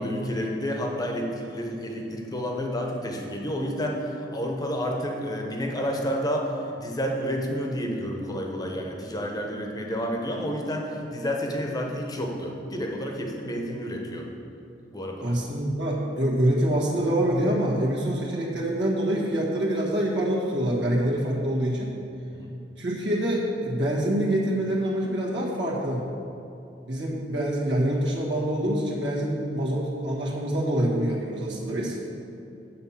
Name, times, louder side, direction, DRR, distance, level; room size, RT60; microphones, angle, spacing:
voice 1, 0.0-14.3 14.9-15.4 22.3-22.5, equal, 20° left, 1 dB, 1.0 m, -30 dB
voice 2, 15.2-21.9 22.8-26.0 26.9-32.0, right 1 dB, 75° right, -4 dB, 1.5 m, -25 dB
8.5 x 4.4 x 7.3 m, 2.7 s
head